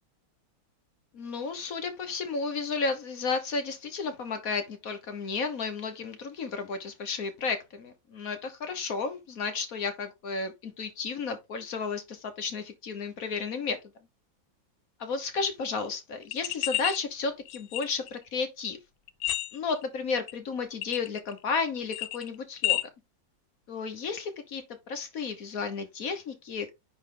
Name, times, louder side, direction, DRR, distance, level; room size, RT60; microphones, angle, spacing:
voice 1, 1.1-13.8 15.0-18.8 19.5-22.8 23.7-26.7, left 4 dB, 50° left, 1.4 m, -33 dB
sound 1, 16.2-17.0 17.5-18.2 19.1-19.8 20.3-20.4 20.8-21.4 21.7-22.8, left 15 dB, 85° left, 1.4 m, -30 dB
9.5 x 3.2 x 3.7 m
omnidirectional pair, 2.1 m